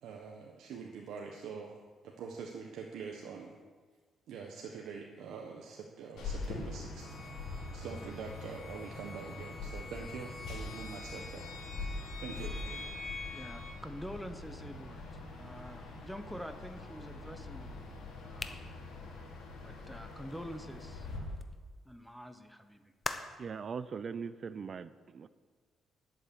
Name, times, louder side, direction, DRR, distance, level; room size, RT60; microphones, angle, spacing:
voice 1, 0.0-1.8 2.0-3.5 4.3-7.1 7.7-11.5 12.2-13.0, right 6 dB, 80° right, 1 dB, 1.3 m, -44 dB
sound 1, 6.2-21.2, left 3 dB, 80° left, 3.1 m, -44 dB
sound 2, 7.0-13.7, left 4 dB, 50° left, 2.8 m, -47 dB
voice 2, 13.3-17.9 18.2-18.7 19.6-21.4 21.8-22.9, equal, ahead, 8 dB, 1.0 m, -47 dB
sound 3, 18.3-21.6 23.0-23.5, left 3 dB, 25° left, 0.9 m, -44 dB
voice 3, 23.4-25.3, right 6 dB, 45° right, 14 dB, 0.6 m, -40 dB
11.0 x 7.9 x 7.1 m, 1.4 s
cardioid pair, 90°, 0 cm